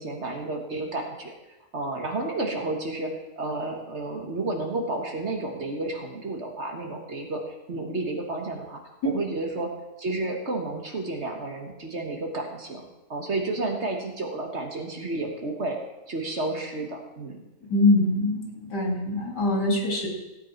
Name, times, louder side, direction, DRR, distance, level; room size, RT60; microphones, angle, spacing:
voice 1, 0.0-1.3 1.7-9.7 10.0-12.8 13.1-15.8 16.1-17.4, right 2 dB, 45° right, 2 dB, 1.8 m, -31 dB
voice 2, 17.7-20.1, left 2 dB, 90° left, -1 dB, 3.2 m, -23 dB
16.5 x 8.2 x 4.5 m, 1.0 s
omnidirectional pair, 1.7 m